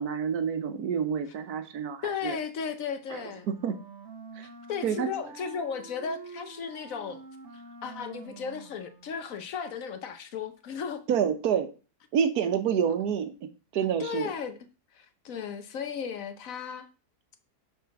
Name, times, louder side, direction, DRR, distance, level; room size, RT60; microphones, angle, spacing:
voice 1, 0.0-2.4 3.1-3.2 3.5-3.8 4.4-4.5 4.8-5.1 11.1-11.7 12.1-13.3 13.7-14.3, right 8 dB, 75° right, 1.4 m, -28 dB
voice 2, 2.0-3.5 4.7-7.2 7.5-11.0 14.0-14.6 14.9-16.9, left 6 dB, 65° left, 1.2 m, -35 dB
Wind instrument woodwind instrument, 3.2-9.3, right 4 dB, 50° right, 1.2 m, -47 dB
7.0 x 4.3 x 5.9 m
omnidirectional pair, 1.6 m